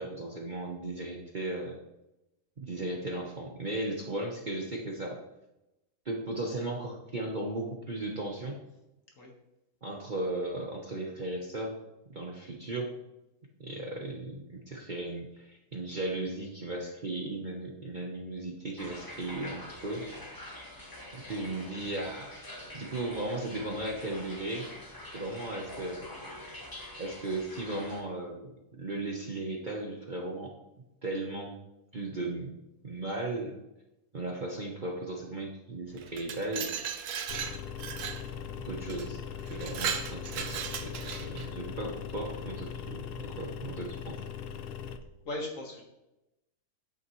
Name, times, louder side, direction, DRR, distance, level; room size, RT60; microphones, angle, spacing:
voice 1, 0.0-1.8 2.6-5.2 6.0-8.6 9.8-11.8 12.1-12.9 13.6-20.1 21.1-22.4 22.7-24.7 25.1-26.0 27.0-30.5 31.0-31.6 31.9-32.5 32.8-33.6 34.1-36.7 38.6-39.2 39.5-44.2, right 2 dB, 35° right, 0 dB, 0.9 m, -36 dB
sound 1, 18.8-28.0, left 1 dB, 15° left, 1.1 m, -45 dB
Glass, 36.0-38.2 38.9-39.1 39.5-41.5, right 8 dB, 70° right, 1.2 m, -36 dB
sound 2, 37.3-45.0, left 8 dB, 70° left, 0.5 m, -40 dB
voice 2, 45.2-45.8, left 2 dB, 55° left, 0 dB, 1.9 m, -37 dB
9.3 x 8.3 x 3.1 m, 0.93 s
omnidirectional pair, 1.7 m